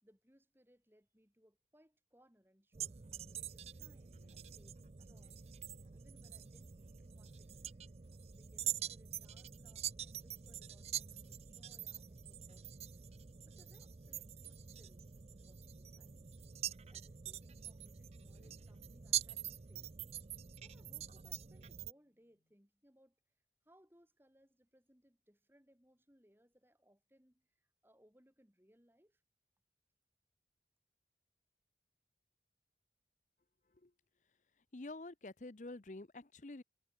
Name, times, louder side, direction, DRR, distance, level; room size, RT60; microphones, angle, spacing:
voice 1, 0.0-5.4 5.9-7.7 8.3-12.9 13.5-15.1 15.4-16.5 16.9-19.9 20.6-23.2 23.6-29.2, equal, 15° right, 3.8 m, -69 dB
sound 1, 2.7-21.9, right 10 dB, 35° right, 0.5 m, -45 dB
sound 2, 4.0-7.4 9.8-15.3 18.2-22.6, equal, 70° left, 5.3 m, -79 dB
voice 2, 34.7-36.6, left 2 dB, 45° left, 0.8 m, -48 dB
head